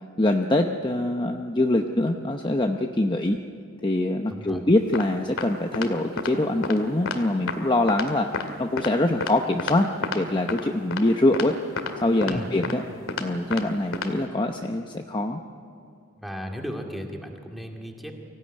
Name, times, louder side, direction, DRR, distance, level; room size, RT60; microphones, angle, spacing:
voice 1, 0.2-3.4 3.8-8.3 8.6-9.9 10.1-11.5 12.0-12.8 13.2-15.4, left 1 dB, 20° left, 4 dB, 0.8 m, -24 dB
voice 2, 4.3-4.6 12.3-12.5 16.2-18.2, equal, ahead, 1 dB, 2.3 m, -35 dB
sound 1, 4.9-5.0 5.4-5.5 5.7-5.9 6.2-6.3 6.6-6.8 7.1-7.2 7.5-7.6 7.9-8.1 8.3-8.5 8.8-8.9 9.2-9.3 9.6-9.7 10.0-10.2 10.5-10.6 10.9-11.0 11.3-11.5 11.8-11.9 12.2-12.3 12.6-12.7 13.1-13.2 13.5-13.6 13.9-14.1, left 4 dB, 80° left, 2.1 m, -29 dB
24.0 x 16.5 x 9.8 m, 2.4 s
head